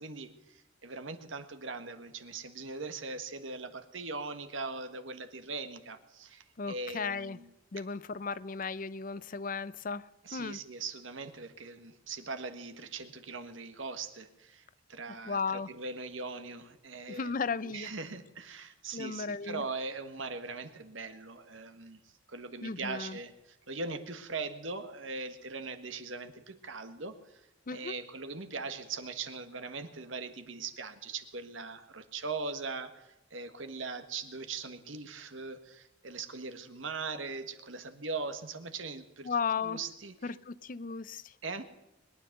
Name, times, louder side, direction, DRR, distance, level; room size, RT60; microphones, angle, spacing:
voice 1, 0.0-7.5 10.2-17.3 17.6-22.0 22.3-27.4 27.7-40.3 41.4-41.6, right 4 dB, 90° right, 1.6 m, -40 dB
voice 2, 6.6-7.4 7.7-10.1 10.3-10.6 15.3-15.7 17.1-17.9 18.9-19.6 22.6-23.2 27.7-28.0 39.2-39.8 40.2-41.2, left 5 dB, 45° left, 0.5 m, -35 dB
21.5 x 10.0 x 6.6 m
head